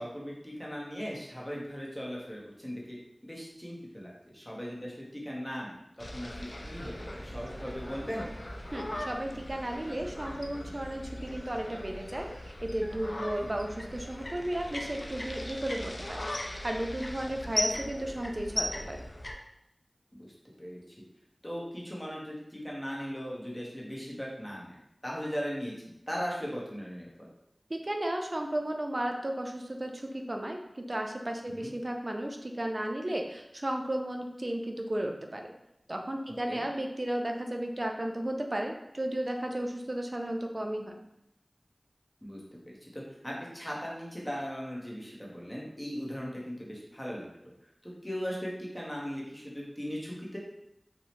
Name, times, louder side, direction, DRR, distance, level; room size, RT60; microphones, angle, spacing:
voice 1, 0.0-8.3 13.3-13.5 17.4-17.7 20.1-20.3 20.6-20.8 21.4-25.7 26.1-27.3 31.5-31.7 36.5-36.6 42.2-47.5 47.8-50.4, equal, 20° left, -4 dB, 0.7 m, -38 dB
sound 1, 6.0-19.3, left 1 dB, 55° left, 0.3 m, -38 dB
voice 2, 8.7-19.0 27.7-35.5 35.9-41.0, right 1 dB, 50° right, 3 dB, 0.3 m, -34 dB
2.7 x 2.0 x 2.9 m, 0.83 s
wide cardioid pair, 45°, 0 cm